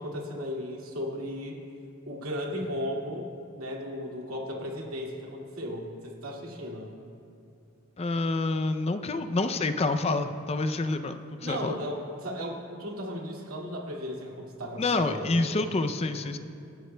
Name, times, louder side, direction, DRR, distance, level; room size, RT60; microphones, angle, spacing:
voice 1, 0.0-1.6 2.1-6.9 11.4-15.6, equal, 90° right, -1 dB, 2.2 m, -36 dB
voice 2, 8.0-11.8 14.8-16.4, left 3 dB, 30° left, 9 dB, 0.5 m, -28 dB
27.0 x 11.5 x 2.2 m, 2.5 s
head